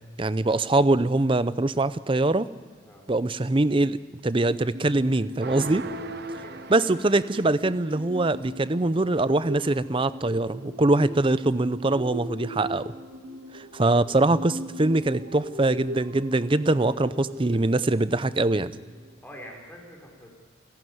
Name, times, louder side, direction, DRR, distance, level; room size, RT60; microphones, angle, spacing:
voice 1, 0.2-2.5 3.1-4.0 4.2-5.8 6.7-12.9 13.5-18.7, right 2 dB, 25° right, 15 dB, 0.6 m, -23 dB
sound 1, 4.7-19.1, equal, 90° right, 3.5 m, -40 dB
sound 2, 5.4-8.1, right 3 dB, 50° right, 0.9 m, -40 dB
voice 2, 6.3-6.8 19.2-20.3, equal, 10° left, 0 dB, 4.1 m, -45 dB
29.5 x 12.0 x 9.5 m, 1.5 s
head